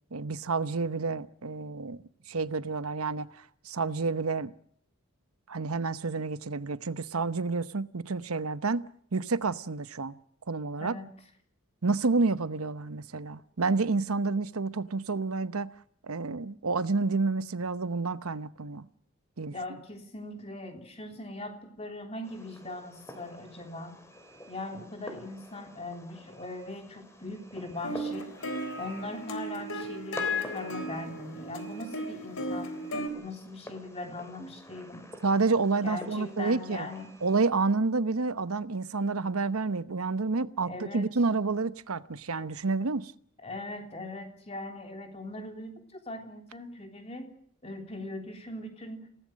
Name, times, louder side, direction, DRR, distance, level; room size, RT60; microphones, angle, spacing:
voice 1, 0.1-4.5 5.5-8.8 9.1-10.2 10.5-11.0 11.8-15.7 16.0-18.9 19.4-19.5 35.2-36.9 37.2-43.1, right 3 dB, 85° right, 0.9 m, -29 dB
voice 2, 19.5-24.0 24.5-28.3 28.8-35.1 35.8-37.2 40.6-41.1 43.4-47.3 47.6-49.1, left 2 dB, 30° left, 3.5 m, -40 dB
Fireworks, 22.2-37.4, left 1 dB, 15° left, 3.5 m, -48 dB
sound 1, 27.8-33.1, left 1 dB, 75° left, 3.7 m, -35 dB
29.0 x 18.0 x 6.4 m
head